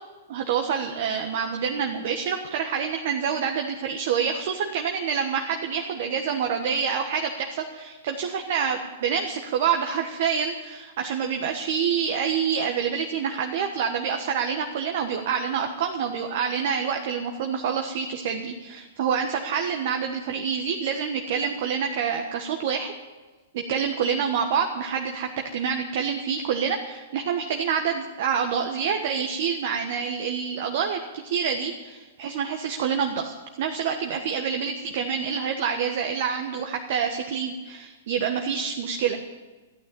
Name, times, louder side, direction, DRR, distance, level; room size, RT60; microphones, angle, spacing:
voice 1, 0.3-22.9 23.5-39.2, right 7 dB, 55° right, 3 dB, 1.4 m, -27 dB
14.0 x 9.2 x 8.6 m, 1.3 s
hypercardioid pair, 115°, 0 cm